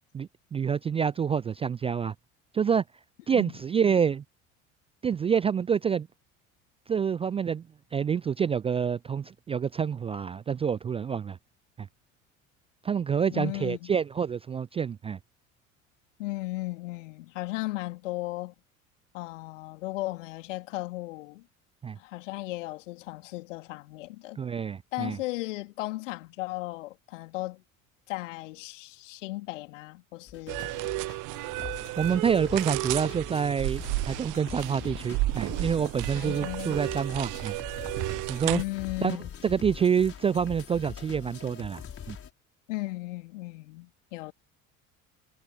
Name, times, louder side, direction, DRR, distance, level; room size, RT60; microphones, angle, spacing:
voice 1, 0.1-2.1 2.5-2.8 3.3-4.2 5.0-6.1 6.9-7.7 7.9-11.4 11.8-11.9 12.8-15.2 21.8-22.0 24.4-25.2 32.0-37.6 38.3-38.6 39.0-39.2 39.4-41.8 42.1-42.2, right 7 dB, 15° right, 0.4 m, -27 dB
voice 2, 13.3-13.9 16.2-18.5 19.1-21.4 22.0-24.4 24.9-27.6 28.1-30.7 36.1-36.8 38.4-39.3 42.7-44.3, left 20 dB, 65° left, 3.1 m, -36 dB
sound 1, 30.3-42.3, left 8 dB, 35° left, 5.2 m, -43 dB
sound 2, 30.5-38.6, right 23 dB, 50° right, 1.2 m, -33 dB
figure-of-eight pair, 65°, 39 cm